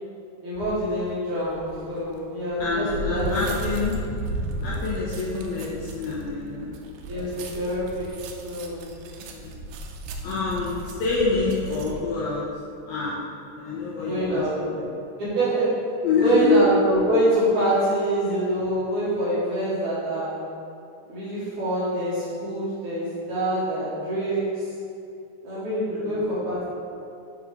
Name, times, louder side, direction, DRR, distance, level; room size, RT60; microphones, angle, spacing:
voice 1, 0.4-3.5 7.1-8.1 8.4-8.9 14.0-14.8 15.2-15.8 16.2-20.4 21.1-24.7 25.4-26.6, right 1 dB, 55° right, -10 dB, 2.4 m, -25 dB
sound 1, 0.6-0.9 1.5-12.0, right 1 dB, 85° right, 2.8 m, -35 dB
voice 2, 2.6-4.0 4.6-6.7 9.2-9.6 10.2-12.4 12.9-13.2 13.6-14.9 16.0-16.6 25.9-26.3, left 4 dB, 75° left, -7 dB, 2.3 m, -26 dB
7.0 x 4.8 x 4.9 m, 2.7 s
omnidirectional pair, 5.2 m